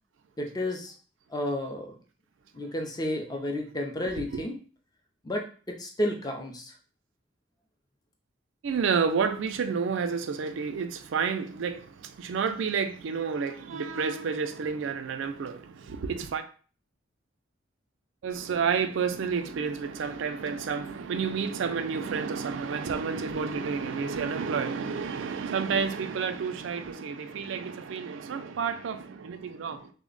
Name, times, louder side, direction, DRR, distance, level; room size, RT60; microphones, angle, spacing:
voice 1, 0.4-0.9 1.3-1.9 2.5-4.5 5.2-6.7, left 1 dB, 20° left, 0.5 m, -32 dB
voice 2, 8.6-16.4 18.2-29.9, right 6 dB, 70° right, 0.4 m, -30 dB
3.2 x 2.1 x 3.7 m
head